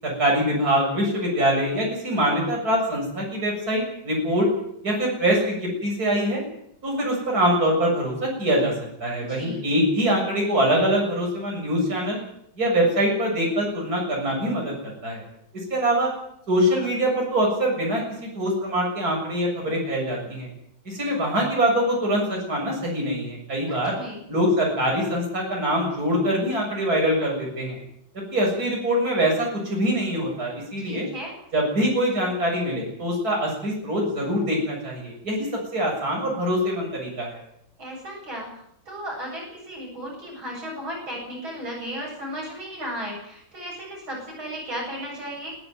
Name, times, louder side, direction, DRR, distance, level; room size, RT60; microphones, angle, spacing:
voice 1, 0.0-4.5 4.8-6.4 6.8-8.7 9.0-12.2 12.6-15.2 15.7-16.1 16.5-20.5 20.8-24.0 24.3-27.8 28.3-31.1 31.5-35.5 35.7-37.4, equal, 45° right, -1 dB, 7.8 m, -24 dB
voice 2, 9.2-9.6 23.7-24.2 30.9-31.4 37.8-38.5 38.9-45.5, equal, 80° right, -2 dB, 9.0 m, -35 dB
22.5 x 13.5 x 9.4 m, 0.76 s
omnidirectional pair, 2.2 m